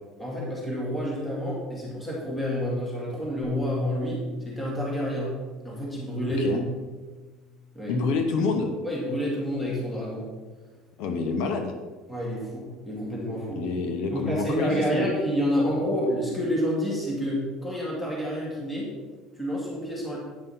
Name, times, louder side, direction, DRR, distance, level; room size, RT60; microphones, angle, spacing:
voice 1, 0.2-5.3 5.6-6.6 7.7-8.0 8.8-10.2 12.1-13.6 14.1-18.9 19.4-20.2, equal, 10° left, -5 dB, 2.3 m, -29 dB
Bass guitar, 3.4-9.7, left 1 dB, 25° right, 2.0 m, -39 dB
voice 2, 7.9-8.7 11.0-11.7 13.6-15.1, left 4 dB, 65° left, 5 dB, 1.0 m, -27 dB
9.4 x 5.6 x 5.7 m, 1.4 s
cardioid pair, 155°, 0 cm